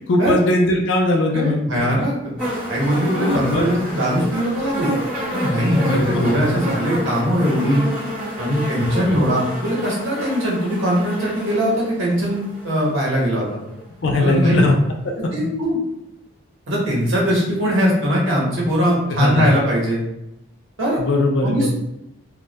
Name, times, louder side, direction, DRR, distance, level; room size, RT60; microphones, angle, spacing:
voice 1, 0.1-1.9 3.2-3.7 5.5-6.7 8.8-9.2 14.0-14.8 15.0-15.5 19.1-19.5 21.0-21.7, left 2 dB, 60° left, 1 dB, 0.4 m, -20 dB
voice 2, 1.3-2.1 2.7-4.9 5.3-7.8 8.4-13.5 14.2-14.7 15.3-15.8 16.7-20.0 20.8-21.0 21.4-21.7, equal, 70° right, -4 dB, 0.9 m, -20 dB
sound 1, 2.4-13.5 14.4-14.5, equal, 5° right, 0.8 m, -29 dB
2.2 x 2.0 x 2.7 m, 0.83 s
head